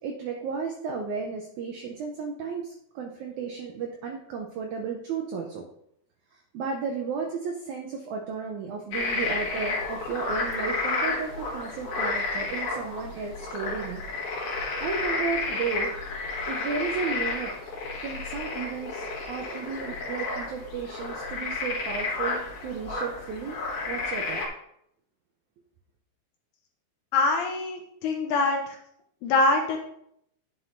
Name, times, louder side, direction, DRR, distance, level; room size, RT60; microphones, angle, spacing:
voice 1, 0.0-5.6 6.3-14.0 14.8-15.9 16.5-17.5 18.0-23.6 23.8-24.4, right 5 dB, 80° right, 2 dB, 1.7 m, -33 dB
sound 1, 8.9-24.5, left 3 dB, 65° left, 2.8 m, -31 dB
voice 2, 27.1-28.6 29.2-29.8, left 3 dB, 80° left, 2 dB, 1.8 m, -24 dB
10.0 x 6.1 x 2.6 m, 0.73 s
omnidirectional pair, 4.3 m